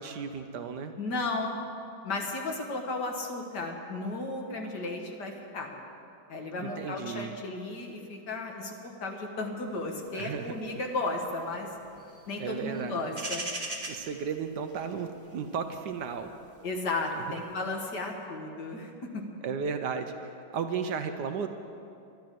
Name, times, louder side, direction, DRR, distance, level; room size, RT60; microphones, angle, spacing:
voice 1, 0.0-0.9 6.6-7.3 10.1-10.6 12.4-13.1 13.9-16.3 17.1-17.4 19.4-21.5, right 6 dB, 70° right, 7 dB, 1.2 m, -34 dB
voice 2, 1.0-1.6 2.0-5.7 6.3-11.7 12.3-13.5 16.6-18.9, left 2 dB, 60° left, 2 dB, 2.0 m, -34 dB
sound 1, 9.8-17.5, right 2 dB, 20° right, 1.3 m, -41 dB
12.0 x 11.5 x 7.5 m, 2.6 s
omnidirectional pair, 2.1 m